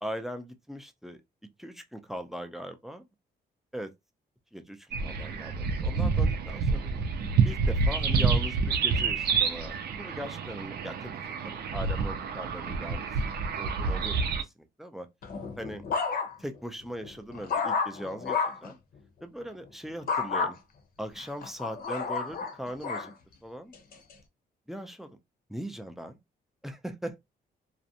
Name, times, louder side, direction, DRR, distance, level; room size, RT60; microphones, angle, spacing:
voice 1, 0.0-1.2 1.6-3.0 3.7-3.9 4.5-7.0 7.4-13.1 13.6-15.1 15.6-15.8 16.4-18.8 19.2-20.6 21.0-23.1 23.4-23.8 24.7-25.2 25.5-26.2 26.6-27.2, equal, ahead, 0.4 m, -40 dB
sound 1, 4.9-14.4, right 5 dB, 70° right, 0.5 m, -28 dB
sound 2, 15.2-16.6 17.0-18.7 20.1-20.5 21.2-23.1 23.7-24.1, left 5 dB, 60° left, 0.7 m, -31 dB
2.5 x 2.1 x 2.7 m
cardioid pair, 120°, 17 cm